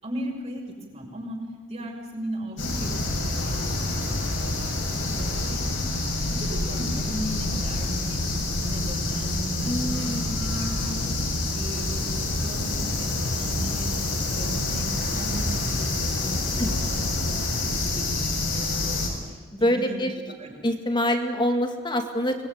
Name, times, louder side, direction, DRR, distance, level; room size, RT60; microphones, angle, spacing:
voice 1, 0.0-1.4 1.7-5.9 6.3-8.3 8.6-20.0 20.4-20.7, right 1 dB, 35° right, 0 dB, 6.3 m, -37 dB
sound 1, 2.6-19.1, left 2 dB, 80° left, 6.8 m, -27 dB
voice 2, 9.6-10.2 16.6-16.7 19.6-20.1 20.6-22.4, equal, 25° left, 5 dB, 2.2 m, -25 dB
24.5 x 20.0 x 9.6 m, 1.4 s
head